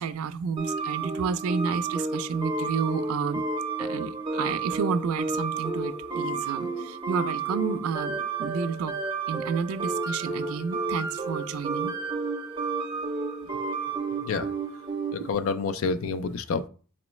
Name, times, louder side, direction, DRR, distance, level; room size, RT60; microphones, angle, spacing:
voice 1, 0.0-3.5 3.8-8.9 9.3-11.9 13.4-13.5 15.2-15.3, right 6 dB, 75° right, 0.3 m, -31 dB
sound 1, 0.6-15.3, right 3 dB, 20° right, 0.6 m, -31 dB
voice 2, 14.2-14.5 15.1-16.7, left 4 dB, 70° left, 0.4 m, -28 dB
4.2 x 3.0 x 3.1 m
head